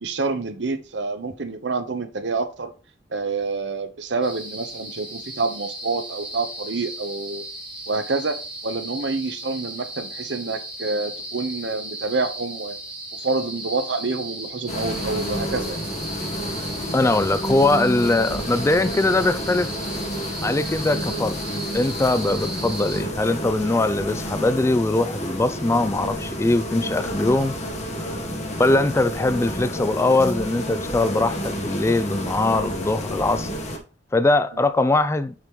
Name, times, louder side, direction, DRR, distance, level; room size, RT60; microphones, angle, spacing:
voice 1, 0.0-2.7 3.1-7.4 7.9-8.4 8.6-12.8 13.1-15.8 28.4-28.5, right 3 dB, 70° right, 0.9 m, -27 dB
sound 1, 4.2-23.0, right 1 dB, 5° right, 2.0 m, -36 dB
sound 2, 14.7-33.8, equal, 40° left, 1.3 m, -30 dB
voice 2, 16.9-19.7 20.4-21.4 21.7-27.5 28.6-33.5 34.1-35.3, left 2 dB, 15° left, 0.3 m, -21 dB
7.4 x 5.2 x 3.1 m
head